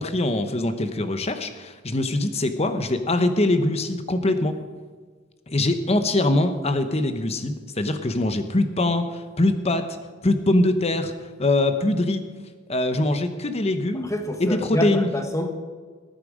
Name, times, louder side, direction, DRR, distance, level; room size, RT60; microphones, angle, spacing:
voice 1, 0.0-4.6 5.5-9.9 10.2-11.1 11.4-12.2 12.7-14.1 14.4-15.1, left 2 dB, 35° left, 9 dB, 1.0 m, -23 dB
voice 2, 14.0-15.5, left 1 dB, 15° left, 6 dB, 1.3 m, -27 dB
19.5 x 9.2 x 5.0 m, 1.5 s
head